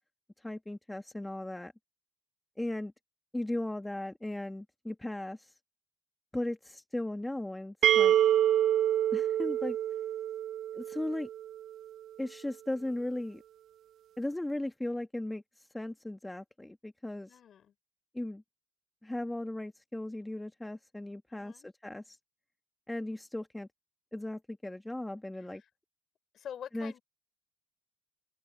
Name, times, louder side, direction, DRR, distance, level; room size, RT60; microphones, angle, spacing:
voice 1, 0.4-1.7 2.6-2.9 3.3-5.5 6.3-8.1 9.1-9.8 10.7-11.3 12.2-13.4 14.2-17.4 18.1-18.4 19.0-22.2 22.9-23.7 24.1-25.6 26.7-26.9, left 1 dB, 10° left, 1.7 m, -37 dB
sound 1, 7.8-11.5, right 11 dB, 50° right, 0.6 m, -27 dB
voice 2, 17.3-17.7 21.3-21.7 26.3-27.0, left 9 dB, 45° left, 6.0 m, -45 dB
open air
hypercardioid pair, 65°, 0 cm